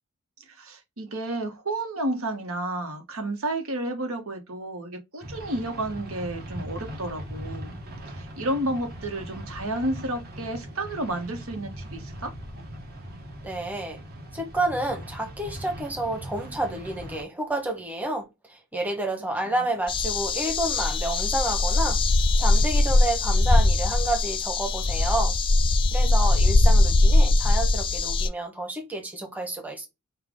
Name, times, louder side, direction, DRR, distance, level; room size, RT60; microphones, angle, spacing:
voice 1, 0.5-7.8 8.0-12.3, right 1 dB, 70° right, 1.3 m, -31 dB
sound 1, 5.2-17.2, equal, 45° right, 1.3 m, -40 dB
voice 2, 13.4-14.0 14.3-22.0 22.4-25.3 25.9-29.9, right 1 dB, 10° right, 1.1 m, -30 dB
sound 2, 19.9-28.3, left 2 dB, 25° left, 0.3 m, -21 dB
5.6 x 2.4 x 3.6 m
head